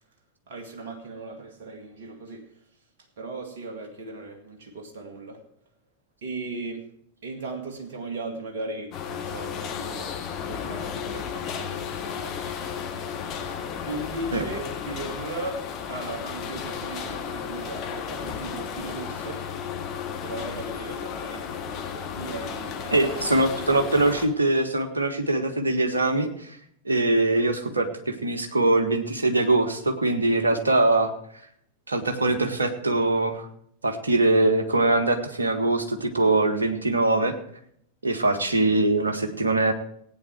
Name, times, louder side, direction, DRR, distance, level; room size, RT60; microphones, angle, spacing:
voice 1, 0.5-2.5 3.2-5.4 6.2-6.9 7.2-12.8 13.9-19.6 20.2-23.9, right 2 dB, 55° right, 1.9 m, -37 dB
sound 1, 8.9-24.3, left 7 dB, 35° left, 1.8 m, -34 dB
voice 2, 22.9-26.5 26.8-31.1 31.9-33.5 33.8-37.4 38.0-39.7, right 2 dB, 75° right, 1.6 m, -22 dB
16.5 x 9.2 x 4.6 m
figure-of-eight pair, 90°, 0 cm